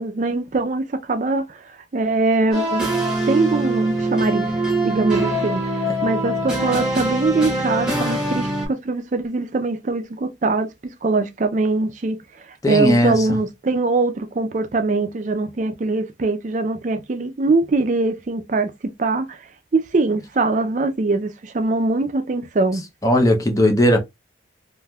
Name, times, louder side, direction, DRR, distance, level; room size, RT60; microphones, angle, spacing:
voice 1, 0.0-2.9 3.2-10.7 11.0-12.2 12.5-18.7 19.0-19.5 19.7-22.8, right 3 dB, 40° right, 0.4 m, -22 dB
The Last Victory, 2.5-8.7, right 1 dB, 5° right, 1.1 m, -23 dB
voice 2, 12.6-13.1 23.0-24.0, left 1 dB, 20° left, 0.5 m, -17 dB
3.3 x 2.5 x 2.3 m
head